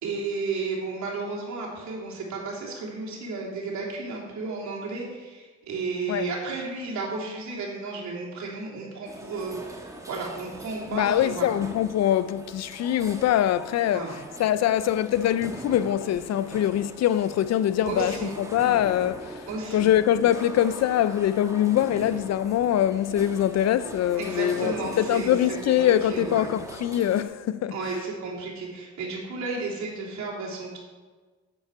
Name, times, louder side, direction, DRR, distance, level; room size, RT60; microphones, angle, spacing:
voice 1, 0.0-11.5 13.9-14.1 17.8-18.3 19.5-19.9 24.2-25.3 25.7-26.5 27.7-30.8, right 3 dB, 70° right, 3.4 m, -33 dB
sound 1, 9.0-27.2, right 1 dB, 10° right, 1.3 m, -41 dB
voice 2, 10.9-27.8, left 11 dB, 60° left, 0.5 m, -23 dB
9.1 x 8.5 x 4.8 m
cardioid pair, 90°, 30 cm